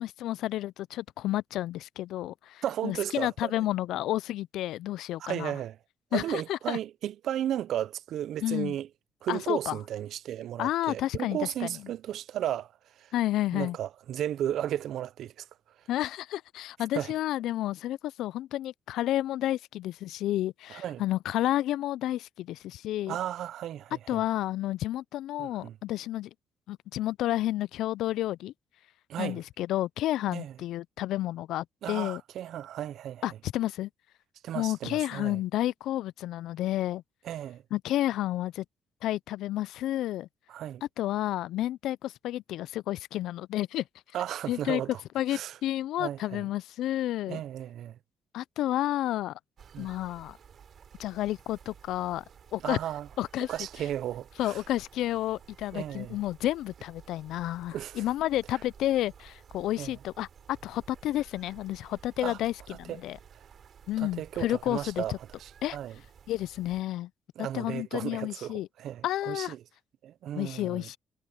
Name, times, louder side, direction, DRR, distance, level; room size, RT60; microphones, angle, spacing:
voice 1, 0.0-5.5 6.1-6.8 8.4-8.8 9.3-9.8 10.6-11.8 13.1-13.8 15.9-23.2 24.1-26.3 26.7-28.5 29.2-32.2 33.2-33.9 34.5-37.0 37.7-38.6 39.0-40.3 41.0-43.8 44.5-44.8 45.1-47.4 48.3-49.4 49.8-50.4 51.0-52.2 52.5-52.8 53.2-53.5 54.4-63.2 63.9-65.2 65.6-65.8 66.3-67.1 67.4-68.7 69.0-69.5 70.3-71.0, left 14 dB, 85° left, 0.3 m, -31 dB
voice 2, 2.6-3.7 5.2-5.8 6.1-8.9 9.2-13.1 13.5-15.5 16.9-17.1 20.7-21.0 23.1-24.2 25.4-25.8 29.1-29.4 30.3-30.5 31.8-33.4 34.4-35.4 37.2-37.6 40.5-40.8 44.1-45.0 45.3-45.6 46.0-46.5 47.3-48.0 49.7-49.9 52.6-53.1 53.5-54.6 55.7-56.2 57.7-58.0 59.8-59.9 62.2-62.4 62.9-63.0 63.3-63.4 64.0-66.0 67.4-69.6 70.0-70.9, right 11 dB, 75° right, 0.5 m, -34 dB
sound 1, 49.6-66.8, right 7 dB, 55° right, 3.7 m, -54 dB
cardioid pair, 90°, 0 cm